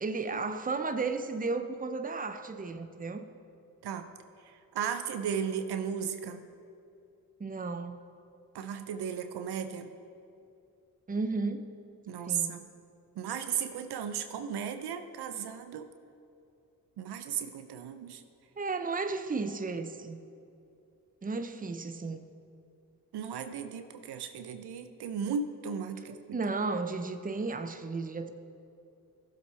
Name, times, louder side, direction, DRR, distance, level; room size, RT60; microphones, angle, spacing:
voice 1, 0.0-3.3 7.4-8.0 11.1-11.7 12.3-12.6 18.6-20.2 21.2-22.2 26.0-28.3, right 3 dB, 20° right, 9 dB, 0.7 m, -34 dB
voice 2, 4.7-6.4 8.5-9.9 12.1-12.6 13.2-15.9 17.0-18.2 23.1-26.4, right 7 dB, 70° right, 9 dB, 0.7 m, -35 dB
15.0 x 7.6 x 3.4 m, 2.6 s
supercardioid pair, 45°, 41 cm